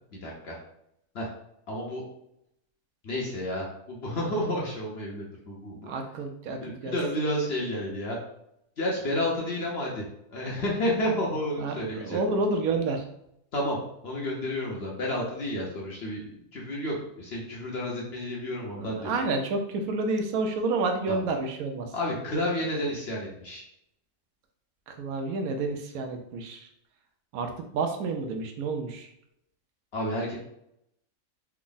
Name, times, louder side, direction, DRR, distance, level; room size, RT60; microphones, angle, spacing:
voice 1, 0.1-0.6 1.1-1.3 1.7-2.0 3.0-5.9 6.6-8.2 8.8-10.0 10.3-12.2 13.5-13.8 14.0-19.2 21.1-21.2 21.9-23.6 29.9-30.4, left 1 dB, 50° left, -3 dB, 0.9 m, -31 dB
voice 2, 5.9-7.0 11.6-13.0 18.7-21.9 24.9-26.7 27.3-29.1, right 3 dB, 80° right, 4 dB, 1.0 m, -29 dB
3.4 x 2.0 x 3.8 m, 0.77 s
omnidirectional pair, 1.5 m